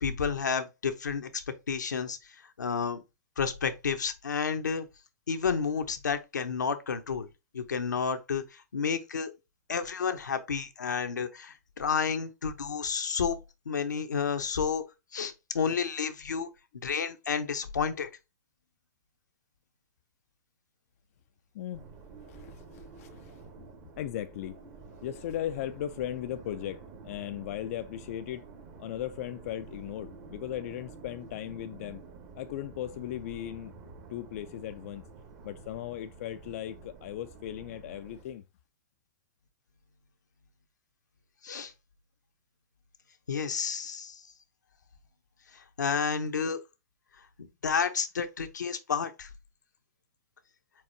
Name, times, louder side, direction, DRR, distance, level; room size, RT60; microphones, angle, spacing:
voice 1, 0.0-3.0 3.4-4.9 5.3-7.3 7.5-9.3 9.7-13.4 13.7-14.8 15.1-16.5 16.8-18.1 41.4-41.7 43.3-44.3 45.5-46.6 47.4-49.3, left 6 dB, 85° left, 0.8 m, -31 dB
voice 2, 21.5-21.9 22.3-23.7 24.0-24.6 25.0-28.5 28.8-32.0 32.3-33.7 34.1-35.1 35.4-38.4, left 11 dB, 50° left, 0.4 m, -37 dB
sound 1, 21.7-38.2, right 4 dB, 40° right, 1.1 m, -49 dB
4.6 x 4.3 x 2.6 m
hypercardioid pair, 120°, 9 cm